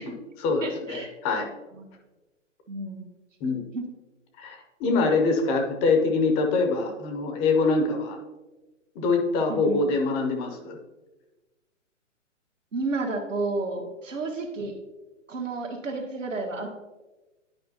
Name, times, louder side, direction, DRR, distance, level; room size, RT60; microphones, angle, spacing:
voice 1, 0.0-1.5 3.4-3.6 4.4-8.2 9.0-10.8, left 3 dB, 15° left, 4 dB, 0.6 m, -24 dB
voice 2, 0.6-1.1 1.8-1.9 2.7-3.0 3.7-3.8 9.5-9.8 12.7-14.7 15.3-16.7, right 3 dB, 80° right, 2 dB, 1.6 m, -31 dB
11.0 x 4.9 x 2.7 m, 1.1 s
hypercardioid pair, 135°, 38 cm